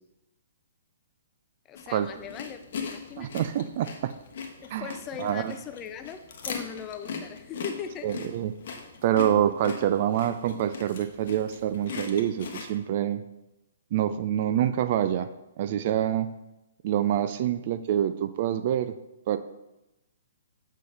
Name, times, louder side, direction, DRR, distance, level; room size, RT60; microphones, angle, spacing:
voice 1, 1.7-3.5 4.6-8.1, left 8 dB, 20° left, 8 dB, 0.5 m, -40 dB
sound 1, 1.8-12.7, left 5 dB, 50° left, 0.9 m, -40 dB
voice 2, 3.2-4.1 4.7-4.9 5.2-5.5 8.0-8.5 9.0-13.2 13.9-15.3 15.6-16.3 16.8-18.9 19.3-19.4, right 10 dB, 45° right, 11 dB, 0.4 m, -26 dB
7.5 x 5.4 x 3.4 m, 0.95 s
figure-of-eight pair, 120°, 0 cm